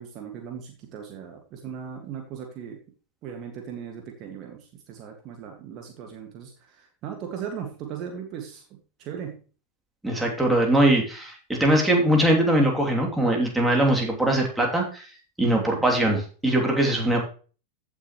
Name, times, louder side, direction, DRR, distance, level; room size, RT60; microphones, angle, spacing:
voice 1, 0.0-2.8 3.2-9.4 15.5-15.9 16.7-16.8, right 8 dB, 35° right, 3 dB, 2.0 m, -38 dB
voice 2, 10.0-15.1 15.4-17.2, right 1 dB, 5° right, -1 dB, 3.1 m, -21 dB
15.5 x 6.4 x 3.2 m, 0.38 s
figure-of-eight pair, 90°, 0 cm